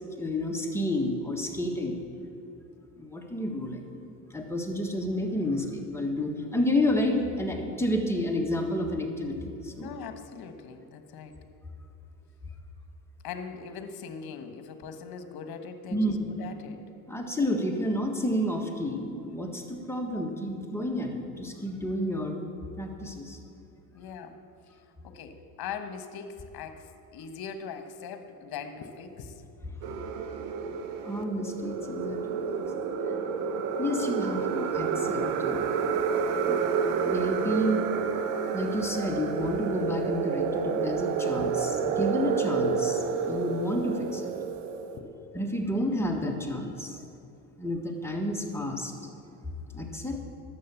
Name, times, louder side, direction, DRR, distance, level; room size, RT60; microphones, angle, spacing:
voice 1, 0.1-2.0 3.0-3.8 4.3-9.9 15.9-16.3 17.1-22.4 22.8-23.4 31.0-32.4 33.8-35.7 36.4-37.8 38.5-44.3 45.3-47.0 47.6-48.9 49.7-50.2, left 1 dB, 5° left, 1 dB, 1.6 m, -30 dB
voice 2, 9.7-11.3 13.2-16.8 20.6-20.7 23.9-24.4 25.0-29.3 29.6-29.7 41.7-41.8 44.9-45.2, left 6 dB, 55° left, 8 dB, 1.3 m, -41 dB
sound 1, 29.8-45.0, right 6 dB, 90° right, 0.9 m, -29 dB
11.0 x 7.5 x 7.1 m, 2.6 s
supercardioid pair, 80°, 44 cm